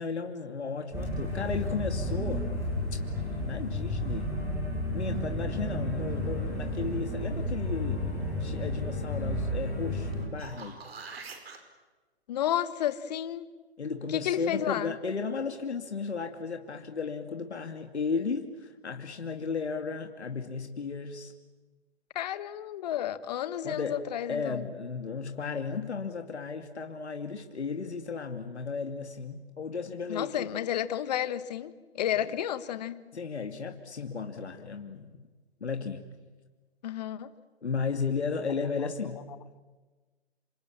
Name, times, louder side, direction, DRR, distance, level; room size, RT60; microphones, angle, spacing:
voice 1, 0.0-2.5 3.4-4.4 4.9-8.1 8.4-10.8 13.8-21.3 23.6-24.0 24.3-30.5 32.1-32.4 33.1-35.2 35.6-36.0 37.6-39.3, left 5 dB, 80° left, 5 dB, 2.6 m, -34 dB
sound 1, 0.9-10.2, left 1 dB, 10° right, 6.4 m, -32 dB
sound 2, 10.1-11.6 16.4-16.5, right 4 dB, 65° right, 5.1 m, -44 dB
voice 2, 12.3-13.5 14.1-14.9 22.1-24.6 30.1-33.0 36.8-37.3 38.6-38.7, left 11 dB, 40° left, 14 dB, 1.5 m, -31 dB
27.5 x 27.0 x 7.4 m, 1.3 s
hypercardioid pair, 145°, 33 cm